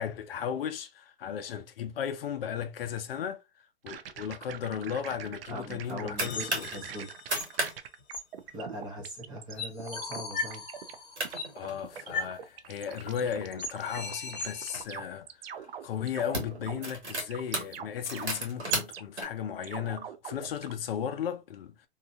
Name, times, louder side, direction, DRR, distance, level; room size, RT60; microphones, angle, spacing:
voice 1, 0.0-3.4 3.8-6.8 11.5-21.8, left 8 dB, 60° left, 0.6 m, -35 dB
sound 1, 3.9-9.5 9.8-11.0 11.2-19.0 19.6-20.7, right 9 dB, 60° right, 0.5 m, -43 dB
voice 2, 5.5-7.1 8.5-10.6, equal, 15° right, 0.6 m, -40 dB
sound 2, 5.6-6.8 7.2-7.7 8.0-8.1 8.4-8.8 9.3-9.6 10.0-10.1 10.9-11.0 11.2-12.3 12.9-14.8 15.6-15.8 16.1-19.2, right 2 dB, 90° right, 1.7 m, -35 dB
sound 3, 6.2-7.6 8.1-8.2 9.1-9.2 9.6-11.6 12.1-12.3 12.6-12.7 13.1-13.2 13.6-14.8, left 4 dB, 30° left, 0.8 m, -38 dB
2.9 x 2.3 x 2.5 m
hypercardioid pair, 135°, 33 cm